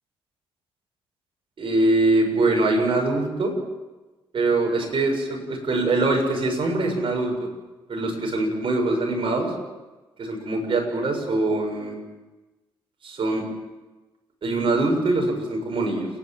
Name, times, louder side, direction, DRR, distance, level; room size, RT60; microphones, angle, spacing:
voice 1, 1.6-3.5 4.3-7.3 7.9-9.5 10.2-12.0 13.0-13.4 14.4-16.1, right 2 dB, 55° right, 1 dB, 7.3 m, -23 dB
29.5 x 11.5 x 9.1 m, 1.2 s
supercardioid pair, 60°, 11 cm